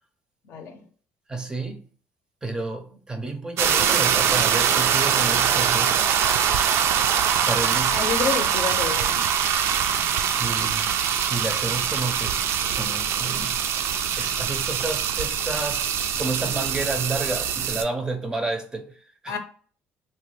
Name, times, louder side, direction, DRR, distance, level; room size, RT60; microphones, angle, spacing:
voice 1, 0.5-0.8 7.9-9.2 19.3-19.4, left 6 dB, 60° left, 0.6 m, -29 dB
voice 2, 1.3-1.9 2.4-6.1 7.4-8.1 10.4-10.9 11.3-12.4 12.7-13.6 14.2-19.4, right 2 dB, 15° right, 0.5 m, -31 dB
sound 1, 3.6-17.8, right 8 dB, 70° right, 0.4 m, -23 dB
3.1 x 2.2 x 3.1 m
cardioid pair, 110°, 5 cm